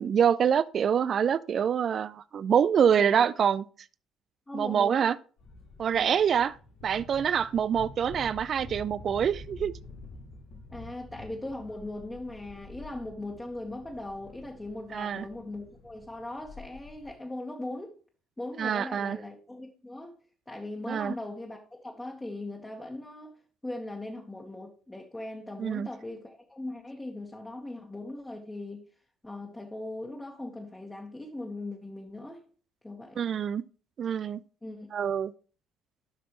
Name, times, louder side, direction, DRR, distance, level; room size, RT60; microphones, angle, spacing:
voice 1, 0.0-3.6 4.5-5.2 5.8-6.6 6.8-9.7 14.9-15.3 18.6-19.2 20.9-21.1 25.6-25.9 33.2-33.6 34.0-34.4 34.9-35.3, right 8 dB, 50° right, 0.3 m, -25 dB
voice 2, 3.0-3.5 4.5-5.1 5.9-6.1 10.7-17.9 18.4-20.2 20.5-23.3 23.6-28.8 29.2-32.4 32.8-33.2 34.6-34.9, left 2 dB, 15° left, 1.5 m, -39 dB
sound 1, 5.4-17.1, left 2 dB, 70° left, 2.9 m, -47 dB
11.5 x 5.9 x 3.1 m
hypercardioid pair, 55°, 0 cm